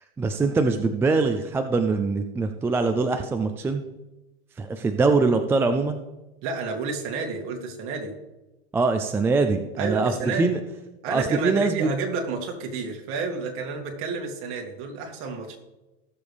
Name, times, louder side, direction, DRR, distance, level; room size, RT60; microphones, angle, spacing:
voice 1, 0.2-3.8 4.6-6.0 8.7-10.6 11.1-11.9, right 3 dB, 10° right, 6 dB, 0.4 m, -23 dB
voice 2, 6.4-8.1 9.8-10.5 11.0-15.6, right 4 dB, 40° right, 2 dB, 2.5 m, -30 dB
17.5 x 7.1 x 3.4 m, 1.0 s
hypercardioid pair, 125°, 32 cm